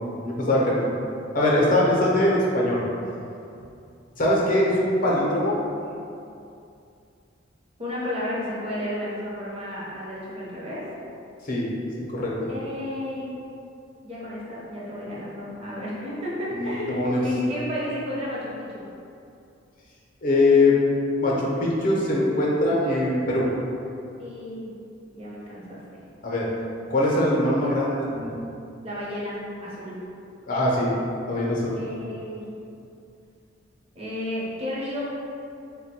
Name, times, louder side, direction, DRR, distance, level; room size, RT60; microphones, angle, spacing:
voice 1, 0.2-0.9 1.3-2.8 4.2-5.6 11.4-11.7 12.1-12.5 16.6-17.2 20.2-20.8 21.2-23.5 26.2-26.5 26.9-28.4 30.5-30.9 31.3-31.8, left 1 dB, 45° left, -4 dB, 0.7 m, -22 dB
voice 2, 7.8-10.8 12.5-13.3 14.0-18.9 24.2-24.7 25.1-25.8 28.8-30.0 31.7-32.4 33.9-35.0, left 1 dB, 30° right, -7 dB, 0.9 m, -32 dB
3.5 x 2.2 x 4.2 m, 2.6 s
head